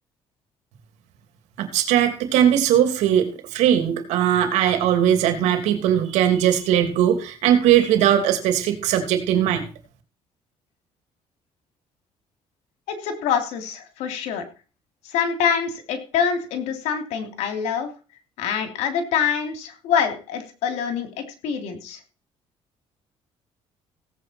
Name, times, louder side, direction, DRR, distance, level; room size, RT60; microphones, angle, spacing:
voice 1, 1.6-9.7, right 10 dB, 90° right, 6 dB, 2.9 m, -19 dB
voice 2, 12.9-14.4 15.0-17.9 18.4-22.0, left 7 dB, 90° left, 6 dB, 3.2 m, -25 dB
17.0 x 8.2 x 4.6 m, 0.37 s
cardioid pair, 110°, 11 cm